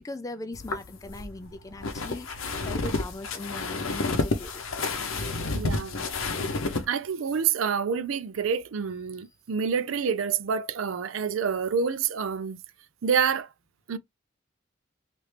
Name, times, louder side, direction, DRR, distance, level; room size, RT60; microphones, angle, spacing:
voice 1, 0.0-2.4 2.6-4.5, left 1 dB, 15° left, 0.3 m, -39 dB
sound 1, 0.5-6.8, left 3 dB, 90° left, 0.7 m, -30 dB
voice 2, 5.5-6.0 6.9-12.6 13.0-13.5 13.9-14.0, right 6 dB, 85° right, 0.4 m, -27 dB
3.2 x 2.5 x 3.2 m
head